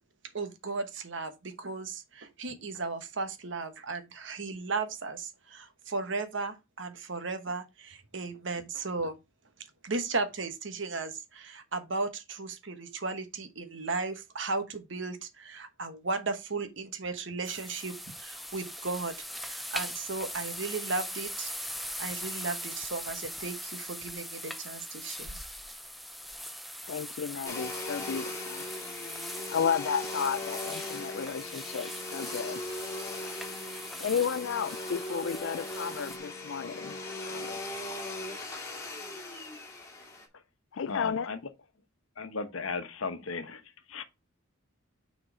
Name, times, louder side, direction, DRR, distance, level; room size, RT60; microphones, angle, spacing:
voice 1, 0.3-9.2 9.8-25.4, right 3 dB, 60° right, 1.2 m, -35 dB
sound 1, 17.4-36.2, equal, ahead, 0.5 m, -41 dB
voice 2, 26.9-28.7 29.5-32.6 34.0-37.0 37.2-37.6 40.7-41.3, left 7 dB, 65° left, 0.4 m, -33 dB
Domestic sounds home sounds, 27.4-40.3, left 2 dB, 15° left, 2.2 m, -39 dB
voice 3, 40.9-41.4 42.2-43.6 43.9-44.0, left 4 dB, 80° left, 1.0 m, -35 dB
6.4 x 4.4 x 4.8 m
head